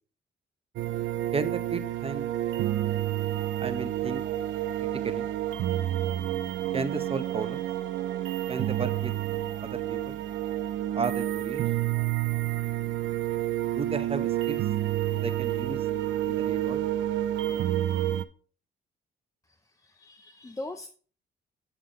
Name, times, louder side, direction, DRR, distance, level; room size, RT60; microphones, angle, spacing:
sound 1, 0.8-18.2, right 13 dB, 75° right, 0.5 m, -29 dB
voice 1, 1.3-2.3 3.6-4.2 5.0-5.3 6.7-7.7 8.5-9.1 9.6-10.2 10.9-11.7 13.7-14.6 15.2-15.8 16.2-16.8, right 4 dB, 30° right, 10 dB, 0.9 m, -33 dB
voice 2, 19.5-20.9, left 2 dB, 15° left, 7 dB, 0.6 m, -41 dB
7.2 x 7.0 x 3.7 m, 0.41 s
cardioid pair, 90°, 20 cm